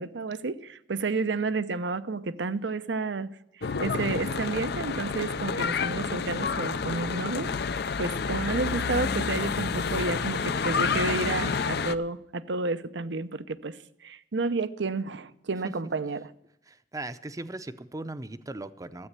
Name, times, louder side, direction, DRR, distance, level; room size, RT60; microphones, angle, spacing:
voice 1, 0.0-16.3, right 3 dB, 80° right, 0.7 m, -31 dB
Church bell / Traffic noise roadway noise, 3.6-12.0, left 5 dB, 65° left, 0.6 m, -29 dB
voice 2, 16.7-19.1, right 2 dB, 20° right, 0.6 m, -38 dB
13.0 x 8.4 x 8.2 m
head